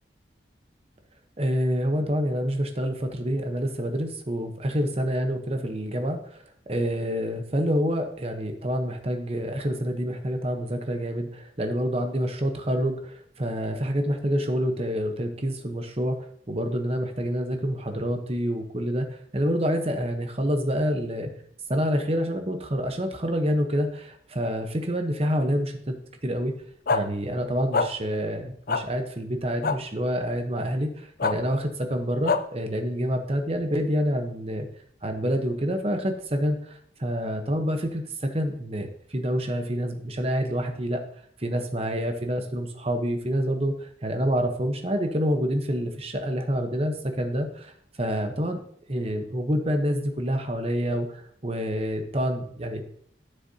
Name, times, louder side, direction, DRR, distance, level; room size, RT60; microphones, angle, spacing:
voice 1, 1.4-6.4 6.7-16.2 16.5-21.3 21.7-26.0 26.2-26.5 26.9-34.7 35.0-41.0 41.4-48.6 48.9-52.8, equal, 35° right, 5 dB, 1.0 m, -27 dB
sound 1, 26.9-27.0 27.7-27.9 28.7-28.8 29.6-29.8 31.2-31.3 32.2-32.4, left 4 dB, 50° left, 0.5 m, -23 dB
11.5 x 6.7 x 2.8 m, 0.64 s
head